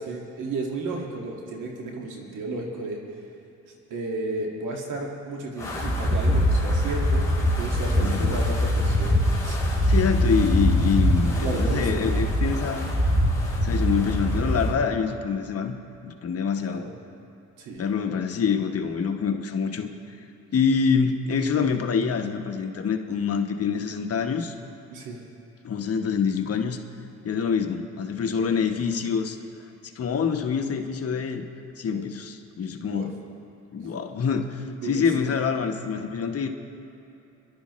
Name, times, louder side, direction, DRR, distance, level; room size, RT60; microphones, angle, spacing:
voice 1, 0.0-3.0 3.7-9.6 11.4-12.1 16.7-16.9 17.6-17.9 24.9-25.2 31.9-32.1 32.8-33.1 34.8-35.3, right 3 dB, 85° right, 0 dB, 1.9 m, -33 dB
Wind, 5.6-14.8, equal, 10° left, 2.9 m, -23 dB
voice 2, 8.0-8.4 9.9-12.9 13.6-15.8 16.0-16.9 17.8-20.3 20.5-24.5 25.6-26.8 27.2-29.4 29.9-31.4 31.8-33.2 33.7-36.5, left 6 dB, 50° left, 5 dB, 1.1 m, -26 dB
25.5 x 11.5 x 3.1 m, 2.8 s
cardioid pair, 90°, 30 cm